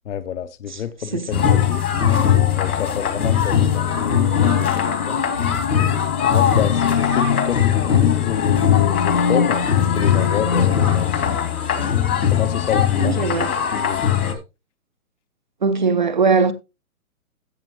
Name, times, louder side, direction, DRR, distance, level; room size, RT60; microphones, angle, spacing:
voice 1, 0.1-1.8 2.6-5.3 6.2-11.4 12.3-14.3, left 9 dB, 55° left, 0.8 m, -29 dB
voice 2, 1.1-1.5 13.0-13.5 15.6-16.5, right 5 dB, 35° right, 0.5 m, -20 dB
sound 1, 1.3-14.3, left 9 dB, 75° left, 2.8 m, -20 dB
sound 2, 3.2-11.3, left 5 dB, 30° left, 0.5 m, -26 dB
15.0 x 5.7 x 3.1 m
hypercardioid pair, 170°, 44 cm